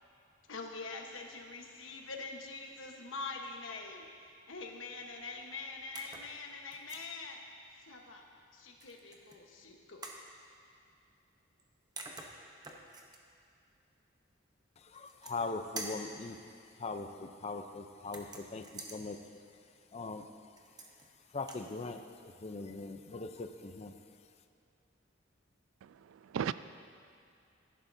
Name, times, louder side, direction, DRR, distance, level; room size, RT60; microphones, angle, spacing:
voice 1, 0.5-7.4 7.8-8.2 8.5-10.0, left 3 dB, 75° left, 2 dB, 1.2 m, -44 dB
sound 1, 5.9-6.3 6.7-7.1 8.8-9.4 10.0-10.2 11.6-11.7 12.0-13.2 14.9-15.5 15.8-16.1 18.0-19.0 20.6-21.1 21.4-21.7, right 3 dB, 20° right, 0.8 m, -46 dB
voice 2, 14.8-16.4 16.8-19.2 19.9-20.3 21.3-24.0, left 3 dB, 35° left, 7 dB, 0.5 m, -41 dB
voice 3, 25.8-26.5, right 8 dB, 75° right, 14 dB, 0.3 m, -36 dB
15.5 x 11.0 x 2.7 m, 2.6 s
head